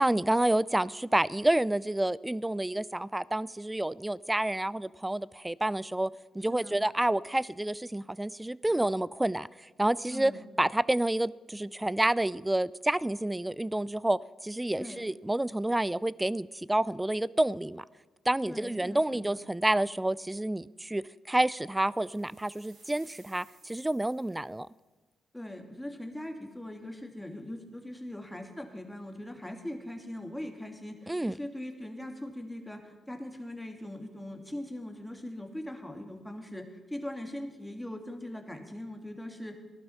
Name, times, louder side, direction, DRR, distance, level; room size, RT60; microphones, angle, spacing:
voice 1, 0.0-9.5 9.8-10.3 10.6-17.8 18.3-24.7 31.1-31.4, right 1 dB, 15° right, 0.4 m, -29 dB
voice 2, 10.1-10.4 14.8-15.0 18.4-19.4 25.3-39.6, left 1 dB, 5° left, 2.5 m, -41 dB
sound 1, 21.8-24.8, right 3 dB, 75° right, 5.7 m, -61 dB
15.5 x 11.5 x 5.7 m
hypercardioid pair, 45°, 0 cm